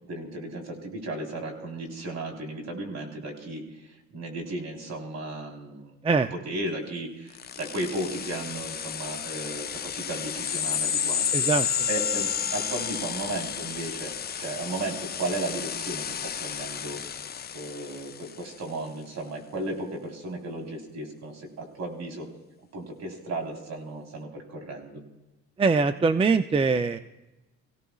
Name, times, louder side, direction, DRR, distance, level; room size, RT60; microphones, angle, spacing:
voice 1, 0.1-11.5 11.9-17.0 17.5-22.3 22.7-25.0, right 2 dB, 55° right, 1 dB, 3.9 m, -35 dB
sound 1, 7.4-18.5, left 8 dB, 30° left, 0.6 m, -31 dB
voice 2, 11.3-11.7 25.6-27.0, right 4 dB, 20° right, 10 dB, 0.5 m, -22 dB
26.0 x 16.5 x 2.4 m, 1.0 s
cardioid pair, 105°, 31 cm